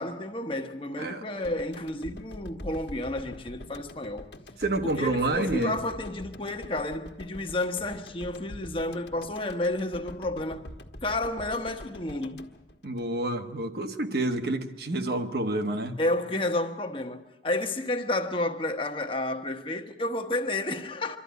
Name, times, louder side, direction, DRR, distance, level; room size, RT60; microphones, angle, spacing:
voice 1, 0.0-4.3 4.8-10.6 11.0-12.5 16.0-21.2, left 2 dB, 30° left, 1.1 m, -31 dB
sound 1, 1.4-13.6, left 1 dB, 75° left, 1.4 m, -45 dB
voice 2, 4.6-5.8 12.8-15.9, right 2 dB, 60° right, 1.2 m, -28 dB
24.5 x 12.5 x 9.3 m
head